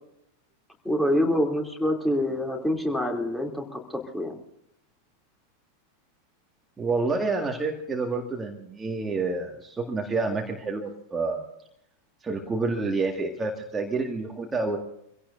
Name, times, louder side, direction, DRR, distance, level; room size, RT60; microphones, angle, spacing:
voice 1, 0.8-4.4, left 1 dB, 5° left, 2 dB, 3.1 m, -26 dB
voice 2, 6.8-11.4 12.2-14.8, right 3 dB, 15° right, 2 dB, 2.0 m, -28 dB
25.5 x 17.0 x 2.7 m, 0.77 s
figure-of-eight pair, 90°, 0 cm